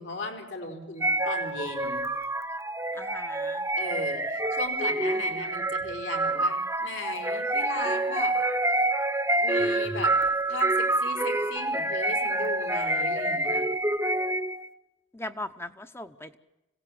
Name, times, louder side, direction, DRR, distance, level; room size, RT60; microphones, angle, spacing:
voice 1, 0.0-2.0 3.7-8.4 9.4-10.2 10.5-13.6, left 2 dB, 75° left, 4 dB, 4.4 m, -37 dB
sound 1, 1.0-14.7, right 2 dB, 15° right, 0.9 m, -27 dB
voice 2, 2.9-3.7 15.1-16.4, left 1 dB, 15° left, 10 dB, 0.8 m, -39 dB
26.0 x 17.0 x 8.7 m, 1.0 s
head